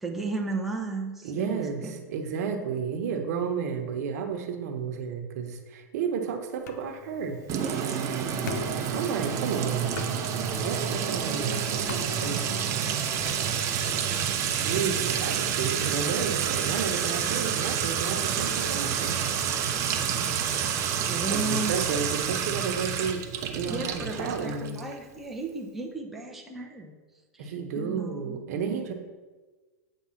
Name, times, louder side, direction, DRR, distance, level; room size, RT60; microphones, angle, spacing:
voice 1, 0.0-1.9 7.6-8.0 21.1-21.8 23.6-27.0 27.3-28.4 28.7-28.9, right 3 dB, ahead, -1 dB, 0.8 m, -35 dB
voice 2, 1.2-7.4 8.9-10.1 10.6-12.7 14.5-19.2 21.3-23.2 23.5-24.8 27.4-28.9, right 6 dB, 65° right, 4 dB, 1.1 m, -32 dB
sound 1, 6.7-14.0, left 5 dB, 70° left, 0.8 m, -42 dB
Sink (filling or washing) / Trickle dribble / Fill (with liquid), 7.5-24.9, right 8 dB, 35° right, 0.8 m, -29 dB
8.7 x 3.6 x 5.8 m, 1.3 s
hypercardioid pair, 130°, 9 cm